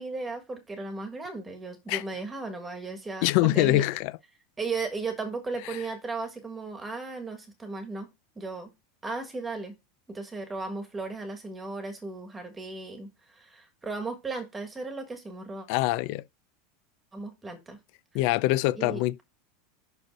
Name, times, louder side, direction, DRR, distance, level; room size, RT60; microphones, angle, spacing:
voice 1, 0.0-3.3 3.5-3.8 4.6-8.1 8.3-8.7 9.0-9.7 10.1-15.7 17.1-17.8 18.7-19.2, right 3 dB, 10° right, 1.5 m, -36 dB
voice 2, 3.2-4.1 5.7-5.8 15.7-16.2 18.1-19.2, left 17 dB, 45° left, 0.4 m, -24 dB
6.1 x 5.2 x 4.6 m
supercardioid pair, 175°, 0 cm